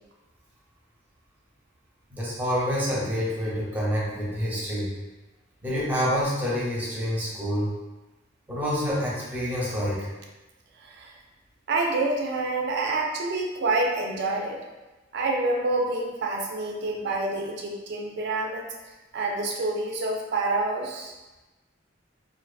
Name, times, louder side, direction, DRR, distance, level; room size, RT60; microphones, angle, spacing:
voice 1, 2.1-4.9 5.6-7.7 8.5-10.1, equal, 10° right, -7 dB, 0.6 m, -27 dB
voice 2, 10.8-11.1 11.7-14.6 15.1-18.7 19.1-21.1, right 2 dB, 60° right, 1 dB, 0.4 m, -27 dB
2.4 x 2.3 x 2.3 m, 1.1 s
head